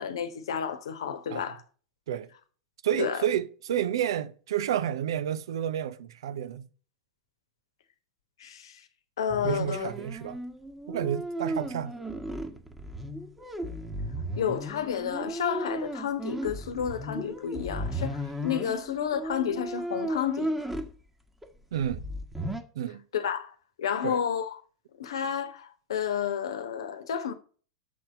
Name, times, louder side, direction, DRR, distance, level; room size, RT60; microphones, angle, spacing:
voice 1, 0.0-1.6 3.0-3.2 8.4-8.8 9.2-9.9 14.4-20.5 23.1-24.5 25.0-27.3, left 8 dB, 70° left, 1.1 m, -31 dB
voice 2, 2.8-6.7 9.4-10.4 10.9-11.9 21.7-22.0 22.7-23.0 24.0-24.2, right 10 dB, 65° right, 0.7 m, -30 dB
sound 1, 9.3-20.9 21.4-21.5 21.8-22.6, right 1 dB, 5° right, 1.3 m, -35 dB
7.2 x 4.3 x 6.8 m
figure-of-eight pair, 95°, 3 cm